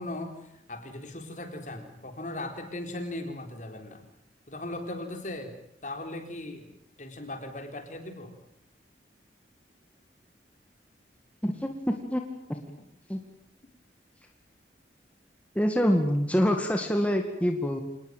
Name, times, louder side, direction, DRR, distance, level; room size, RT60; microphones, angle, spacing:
voice 1, 0.0-4.1 4.5-5.5 5.8-8.3, left 1 dB, 45° left, 6 dB, 3.9 m, -38 dB
voice 2, 11.4-12.2 12.5-12.6 13.1-13.2 15.5-17.8, equal, 10° left, 4 dB, 2.1 m, -26 dB
27.0 x 19.5 x 9.3 m, 0.77 s
head